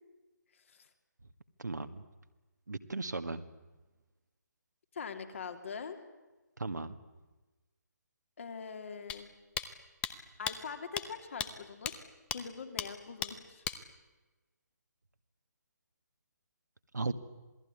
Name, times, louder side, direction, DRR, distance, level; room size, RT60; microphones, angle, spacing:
voice 1, 0.5-0.9 4.9-6.0 8.4-9.3 10.4-12.0 12.3-13.6, left 6 dB, 45° left, 6 dB, 3.2 m, -43 dB
voice 2, 1.6-2.0 2.7-3.4 6.6-7.0 16.9-17.1, right 3 dB, 70° right, 9 dB, 1.9 m, -36 dB
sound 1, 9.1-9.2 9.6-9.7 10.0-10.1 10.5-10.6 11.0-11.1 11.4-11.5 11.9-12.0 12.3-12.4 12.8-12.9 13.2-13.3 13.6-13.8, left 10 dB, 10° left, 1.0 m, -35 dB
27.0 x 20.0 x 9.8 m, 1.2 s
figure-of-eight pair, 145°, 10 cm